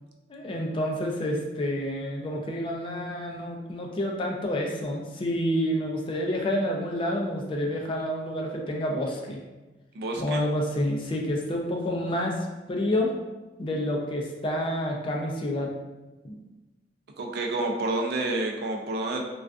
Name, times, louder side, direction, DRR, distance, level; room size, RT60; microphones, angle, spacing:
voice 1, 0.3-9.4 10.2-13.1 13.6-15.7 16.2-16.4, left 1 dB, 30° left, 0 dB, 0.3 m, -29 dB
voice 2, 9.9-10.4 17.2-19.2, right 2 dB, 60° right, 1 dB, 0.4 m, -29 dB
2.3 x 2.3 x 2.4 m, 1.1 s
head